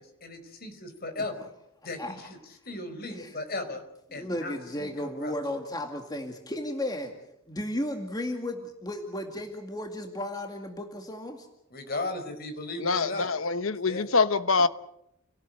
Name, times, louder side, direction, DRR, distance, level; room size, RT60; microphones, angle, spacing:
voice 1, 0.0-1.5 1.8-2.3 2.6-3.8 4.1-5.3 11.7-13.3 13.8-14.1, left 2 dB, 50° left, 4.6 m, -36 dB
voice 2, 4.1-7.1 7.5-11.5, left 1 dB, 20° left, 2.2 m, -34 dB
voice 3, 12.8-14.7, left 4 dB, 85° left, 1.1 m, -25 dB
29.5 x 18.0 x 7.9 m
head